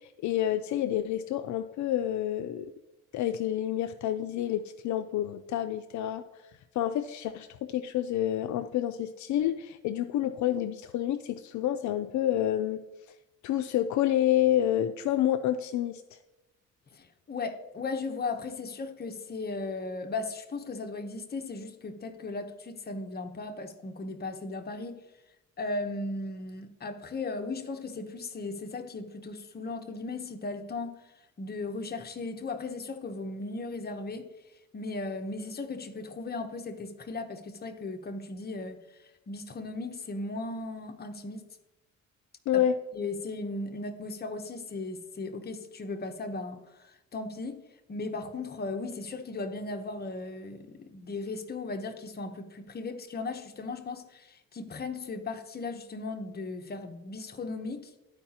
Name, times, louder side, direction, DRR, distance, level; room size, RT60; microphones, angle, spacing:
voice 1, 0.2-2.7 3.1-6.2 6.8-12.8 13.4-16.2 42.5-42.7, left 11 dB, 70° left, 0.4 m, -28 dB
voice 2, 16.9-25.0 25.6-30.9 31.4-34.3 34.7-38.8 39.3-41.4 42.5-42.6 42.9-47.6 47.9-57.9, left 3 dB, 30° left, 0.8 m, -37 dB
12.5 x 4.7 x 2.8 m
cardioid pair, 90°, 30 cm